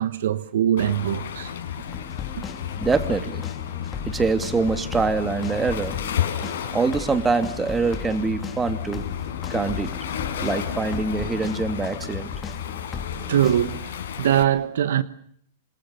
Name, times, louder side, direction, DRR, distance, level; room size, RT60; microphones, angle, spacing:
voice 1, 0.0-1.5 13.3-13.9 14.2-15.0, right 10 dB, 70° right, 1.2 m, -22 dB
Waves surf, 0.8-14.4, left 9 dB, 70° left, 5.2 m, -32 dB
sound 1, 1.8-13.8, left 6 dB, 20° left, 2.6 m, -37 dB
voice 2, 2.8-3.5 4.0-6.0 6.7-9.1 9.5-9.9 10.4-12.3, right 4 dB, 15° right, 2.7 m, -24 dB
27.5 x 26.5 x 6.8 m
hypercardioid pair, 115°, 0 cm